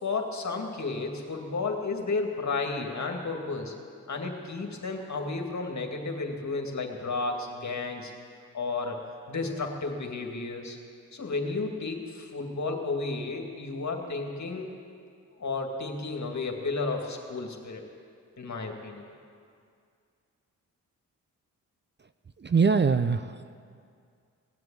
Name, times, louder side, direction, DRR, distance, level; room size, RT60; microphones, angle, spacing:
voice 1, 0.0-3.7 4.1-8.1 8.5-9.0 9.3-10.8 11.1-14.7 15.4-17.8 18.4-19.1, left 3 dB, 50° left, 3 dB, 2.3 m, -32 dB
voice 2, 22.4-23.6, right 5 dB, 30° right, 11 dB, 0.6 m, -24 dB
17.5 x 7.8 x 9.0 m, 2.3 s
supercardioid pair, 45°, 35 cm